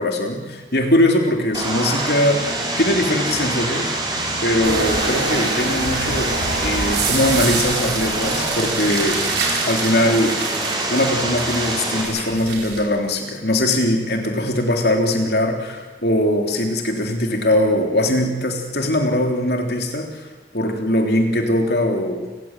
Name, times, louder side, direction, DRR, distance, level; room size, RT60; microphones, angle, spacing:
voice 1, 0.0-3.9 4.4-6.3 6.6-10.4 10.9-20.3 20.5-22.4, left 1 dB, 60° left, 3 dB, 3.4 m, -21 dB
Vehicle, 1.5-12.0, right 2 dB, 25° right, 5.7 m, -25 dB
sound 1, 4.6-12.8, right 4 dB, 75° right, 5.4 m, -27 dB
29.0 x 16.0 x 9.1 m, 1.3 s
head